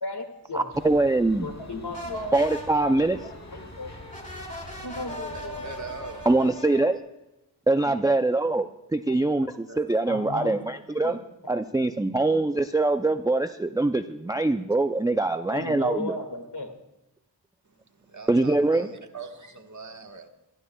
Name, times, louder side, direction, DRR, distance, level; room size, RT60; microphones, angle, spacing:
voice 1, 0.0-0.6 1.4-2.4 2.9-3.9 4.8-5.9 7.8-7.9 9.1-9.2 10.0-10.6 11.0-11.2 15.5-16.7, left 2 dB, 65° left, 5 dB, 2.1 m, -35 dB
voice 2, 0.5-1.5 2.3-3.2 6.3-7.0 7.7-11.2 11.5-16.1 18.3-18.9, right 2 dB, 10° right, 8 dB, 0.4 m, -23 dB
sound 1, 0.7-6.4, left 2 dB, 40° left, 2.0 m, -45 dB
sound 2, 1.9-7.0, equal, 15° left, 2.4 m, -41 dB
voice 3, 5.1-6.2 9.7-9.8 18.1-18.9 19.1-20.3, right 4 dB, 40° right, 4 dB, 1.5 m, -41 dB
27.0 x 12.5 x 2.3 m, 0.96 s
wide cardioid pair, 55°, 43 cm